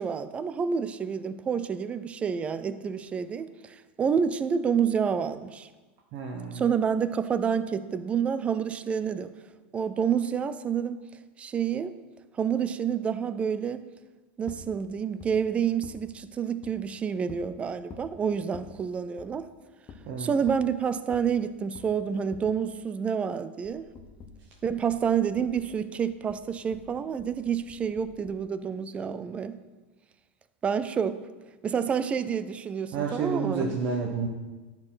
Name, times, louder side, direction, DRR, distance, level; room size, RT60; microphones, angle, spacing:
voice 1, 0.0-5.7 6.5-9.3 9.7-11.0 11.4-11.9 12.4-13.8 14.4-19.5 20.2-23.8 24.6-29.6 30.6-31.2 31.6-33.7, right 7 dB, 20° right, 13 dB, 0.4 m, -28 dB
voice 2, 6.1-6.7 20.1-20.3 32.9-34.3, right 5 dB, 45° right, 0 dB, 1.0 m, -30 dB
sound 1, 14.5-14.7 15.2-15.3 15.8-16.0 16.6-16.7 17.3-17.5 17.9-18.1 18.5-18.7 19.2-19.3 19.9-20.0 20.5-20.7 21.1-21.3 21.8-21.9 22.3-22.5 23.6-25.8 26.1-28.4, left 6 dB, 30° left, 0.9 m, -47 dB
10.5 x 4.5 x 5.6 m, 1.2 s
supercardioid pair, 145°, 6 cm